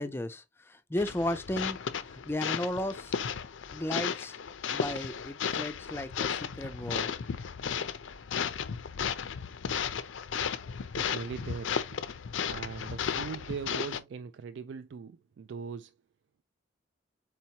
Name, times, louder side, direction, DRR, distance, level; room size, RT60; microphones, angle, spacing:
voice 1, 0.0-1.8 2.1-3.2 3.7-4.4 4.7-7.1, left 1 dB, 10° left, 0.4 m, -34 dB
sound 1, 1.0-14.0, left 7 dB, 85° left, 0.5 m, -34 dB
voice 2, 11.0-11.7 12.5-15.9, right 5 dB, 70° right, 0.3 m, -40 dB
4.4 x 4.3 x 2.8 m
head